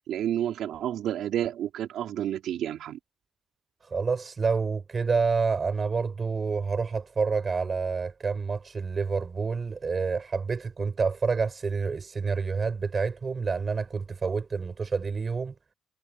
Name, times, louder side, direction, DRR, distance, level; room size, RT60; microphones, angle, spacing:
voice 1, 0.0-3.0, right 11 dB, 75° right, 3.3 m, -30 dB
voice 2, 3.9-15.5, right 5 dB, 30° right, 6.1 m, -28 dB
cardioid pair, 120°, 0 cm